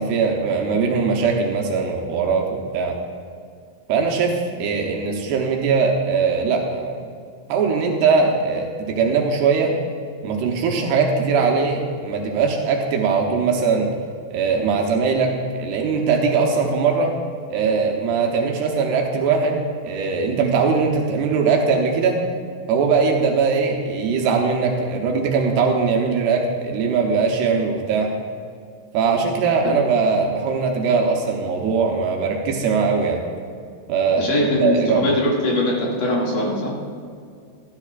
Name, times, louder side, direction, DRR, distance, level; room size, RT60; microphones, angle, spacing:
voice 1, 0.0-3.0 3.9-7.0 7.5-9.7 10.2-13.9 14.3-17.1 17.5-19.6 19.8-22.2 22.7-28.1 28.9-33.2 33.9-35.0, right 5 dB, 85° right, 0 dB, 3.0 m, -20 dB
voice 2, 34.2-36.7, left 1 dB, 55° left, -4 dB, 3.5 m, -21 dB
16.5 x 11.5 x 2.5 m, 2.2 s
omnidirectional pair, 4.6 m